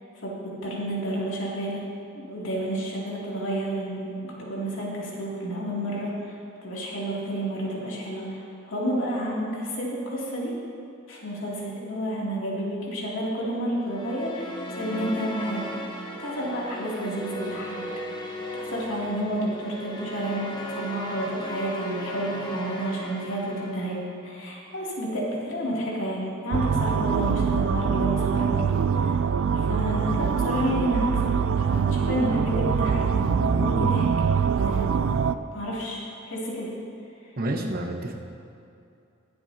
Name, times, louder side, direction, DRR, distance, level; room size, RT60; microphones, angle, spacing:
voice 1, 0.2-1.8 2.1-6.3 6.6-8.4 8.7-10.5 11.1-15.7 16.2-17.8 18.1-24.0 24.2-28.7 29.0-29.1 29.5-34.1 34.5-35.2 35.5-36.7, right 1 dB, 70° left, -5 dB, 2.7 m, -30 dB
sound 1, 13.8-24.2, equal, 20° left, 1.0 m, -37 dB
sound 2, 26.5-35.4, right 6 dB, 80° right, 0.4 m, -24 dB
voice 2, 37.4-38.2, right 1 dB, 45° right, 2 dB, 1.0 m, -29 dB
22.0 x 7.8 x 2.8 m, 2.6 s
head